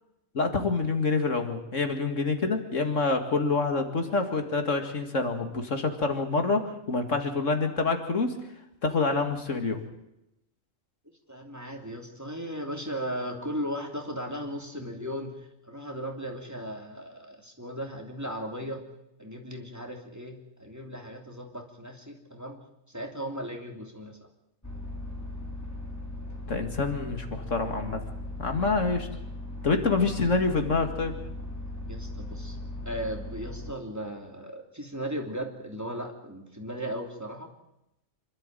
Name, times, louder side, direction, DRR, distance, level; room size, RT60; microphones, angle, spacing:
voice 1, 0.3-8.3 8.8-9.8 26.5-28.0 28.4-29.1 29.6-31.2, left 3 dB, 70° left, 6 dB, 2.4 m, -27 dB
voice 2, 11.3-18.8 19.2-22.6 22.9-24.2 31.9-32.6 32.8-37.5, equal, 15° right, 2 dB, 2.9 m, -36 dB
sound 1, 24.6-33.7, left 1 dB, 10° left, 3.7 m, -38 dB
26.5 x 12.5 x 9.1 m, 0.87 s
omnidirectional pair, 1.3 m